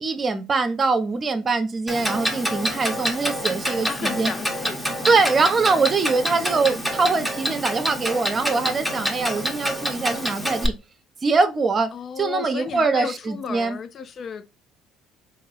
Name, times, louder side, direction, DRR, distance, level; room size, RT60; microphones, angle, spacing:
voice 1, 0.0-4.3 5.0-10.8 11.2-11.9 12.2-13.8, right 4 dB, 35° right, 0.7 m, -23 dB
Clock, 1.9-10.7, equal, 5° left, 0.9 m, -27 dB
voice 2, 3.8-4.8 11.9-14.5, left 7 dB, 50° left, 0.3 m, -33 dB
3.8 x 2.7 x 3.0 m
hypercardioid pair, 55°, 0 cm